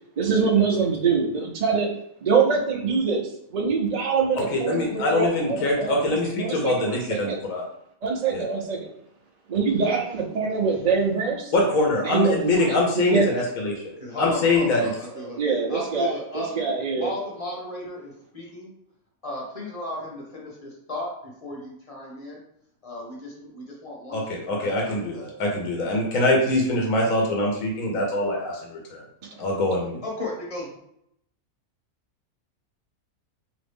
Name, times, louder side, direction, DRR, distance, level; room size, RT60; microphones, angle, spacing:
voice 1, 0.2-1.9 2.2-3.2 3.5-7.4 8.0-8.9 9.5-11.5 12.0-12.4 12.7-13.3 15.1-17.1, right 5 dB, 65° right, 1 dB, 0.4 m, -24 dB
voice 2, 4.4-7.6 8.3-8.5 11.5-14.9 24.1-29.0 29.4-30.0, left 2 dB, 70° left, 0 dB, 1.2 m, -24 dB
voice 3, 14.0-15.4 15.7-16.5 16.9-18.7 19.2-22.4 22.8-24.2 24.5-25.2 30.0-30.8, left 1 dB, 25° left, -3 dB, 1.1 m, -35 dB
3.9 x 3.0 x 3.5 m, 0.76 s
omnidirectional pair, 1.6 m